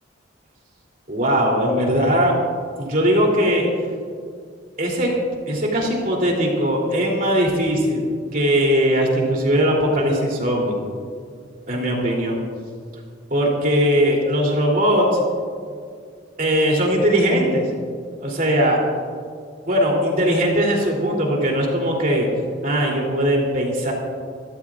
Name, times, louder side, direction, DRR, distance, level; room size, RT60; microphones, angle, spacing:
voice 1, 1.1-2.3 2.8-3.7 4.8-5.2 5.5-8.0 8.3-10.7 11.7-12.4 13.3-15.1 16.4-17.6 18.2-18.8 19.7-22.3 22.6-23.9, equal, 45° right, -1 dB, 3.2 m, -19 dB
23.5 x 14.0 x 2.5 m, 2.1 s
head